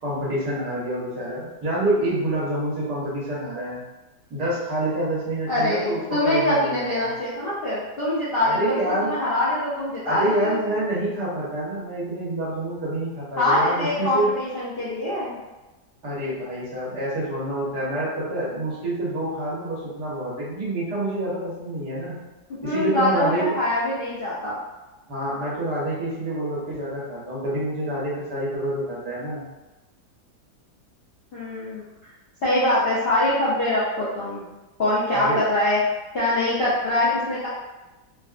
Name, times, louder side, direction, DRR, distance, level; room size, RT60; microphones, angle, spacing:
voice 1, 0.0-3.8 4.3-7.1 8.4-9.2 10.0-14.3 16.0-22.2 22.6-23.5 25.1-29.4 35.1-35.4, right 1 dB, 75° right, -7 dB, 1.7 m, -27 dB
voice 2, 5.5-10.8 13.4-15.4 22.6-24.6 31.3-31.8 32.4-34.4 34.8-35.8 36.1-37.5, left 1 dB, 60° left, -10 dB, 0.6 m, -23 dB
3.6 x 2.3 x 2.4 m, 1.1 s
omnidirectional pair, 1.8 m